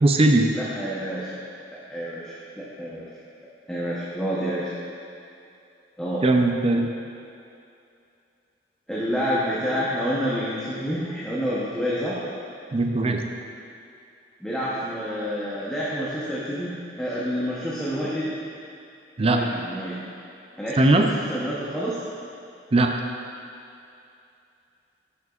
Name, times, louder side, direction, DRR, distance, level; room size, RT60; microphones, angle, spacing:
voice 1, 0.0-0.5 6.2-6.9 12.7-13.2 19.2-19.4 20.8-21.1 22.7-22.9, right 2 dB, 35° right, 3 dB, 0.5 m, -19 dB
voice 2, 0.5-1.4 1.9-3.1 3.7-4.7 6.0-6.2 8.9-12.2 14.4-18.3 19.2-20.0 20.6-22.0, equal, 5° left, -9 dB, 0.9 m, -28 dB
10.5 x 6.6 x 2.4 m, 2.6 s
head